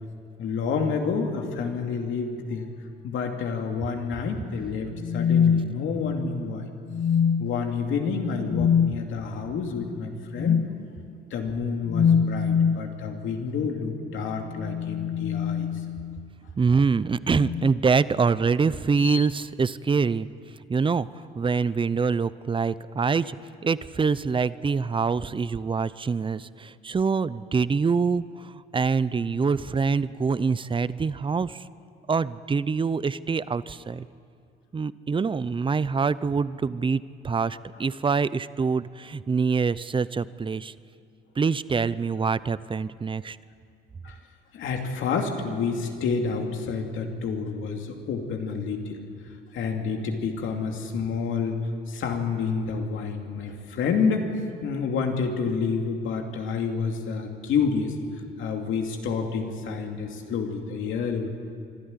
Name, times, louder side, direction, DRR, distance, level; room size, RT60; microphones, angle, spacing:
voice 1, 0.4-2.6 3.0-6.7 7.4-10.6 11.3-15.7 37.7-37.8 44.0-44.2 44.5-49.0 49.5-51.6 51.9-54.3 54.6-57.9 58.4-61.3, left 5 dB, 80° left, 3 dB, 2.6 m, -29 dB
sound 1, 4.9-6.3 6.9-7.7 8.5-8.9 10.4-10.7 11.9-12.9 14.4-16.2 17.3-17.8 19.0-19.3, left 7 dB, 45° left, 0.7 m, -24 dB
voice 2, 16.6-20.3 20.7-21.1 21.3-23.4 23.6-31.6 32.1-34.1 34.7-40.7 41.4-43.4, right 5 dB, 25° right, 17 dB, 0.6 m, -25 dB
25.0 x 12.5 x 9.7 m, 2.3 s
cardioid pair, 90°, 20 cm